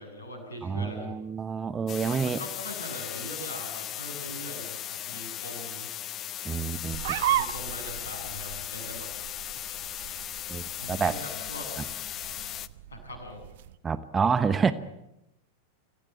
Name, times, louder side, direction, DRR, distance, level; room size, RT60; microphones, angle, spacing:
voice 1, 0.0-1.1 2.0-5.9 7.3-9.1 10.8-11.7 12.9-13.4, left 1 dB, 70° left, 7.8 m, -41 dB
voice 2, 0.6-2.4 6.4-7.2 10.5-11.1 13.8-14.7, right 6 dB, 20° right, 1.0 m, -28 dB
sound 1, 1.9-12.7, left 11 dB, 30° left, 0.8 m, -37 dB
sound 2, 6.9-13.8, right 13 dB, 55° right, 0.9 m, -35 dB
26.5 x 16.0 x 9.3 m
figure-of-eight pair, 90°, 0 cm